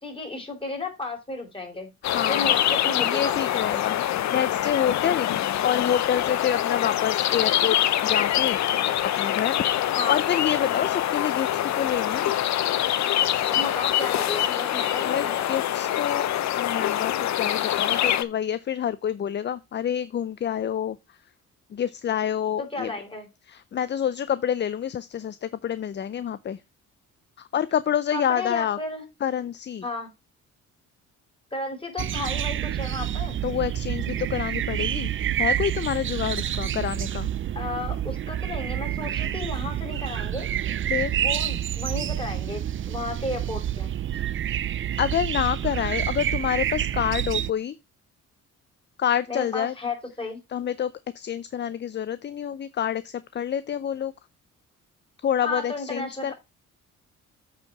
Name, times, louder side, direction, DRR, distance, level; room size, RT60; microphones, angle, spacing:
voice 1, 0.0-1.9 2.3-3.8 10.0-10.2 13.5-15.5 22.6-23.3 28.1-29.0 29.8-30.1 31.5-33.4 37.5-40.5 41.1-44.0 49.3-50.4 55.4-56.3, left 2 dB, 15° left, 4.3 m, -33 dB
sound 1, 2.0-18.2, left 12 dB, 65° left, 0.8 m, -25 dB
voice 2, 2.1-2.6 3.0-5.3 5.6-7.8 8.0-8.6 9.2-12.3 15.0-16.3 16.6-21.0 21.7-22.9 23.5-26.6 27.5-28.8 29.2-29.8 33.4-35.1 35.4-37.3 40.9-41.1 44.1-44.2 45.0-47.7 49.0-49.7 50.5-54.1 55.2-56.3, left 9 dB, 35° left, 0.5 m, -27 dB
sound 2, 32.0-47.5, right 11 dB, 40° right, 0.5 m, -28 dB
8.3 x 4.6 x 5.8 m
cardioid pair, 90°, 30 cm